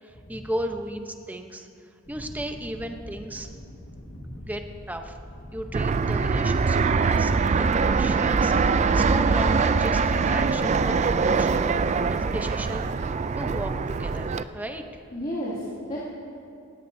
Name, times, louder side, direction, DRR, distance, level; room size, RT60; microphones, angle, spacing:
voice 1, 0.0-1.7 2.1-3.5 4.4-5.2 5.5-11.8 12.1-14.8, right 1 dB, 10° right, 5 dB, 0.8 m, -35 dB
sound 1, 2.0-13.1, equal, 70° left, 1.7 m, -44 dB
voice 2, 4.0-4.5 10.9-11.2 15.1-16.0, equal, 30° left, -7 dB, 2.5 m, -35 dB
Fixed-wing aircraft airplane, 5.7-14.4, right 4 dB, 35° right, 0.3 m, -23 dB
18.5 x 16.5 x 2.7 m, 2.5 s
head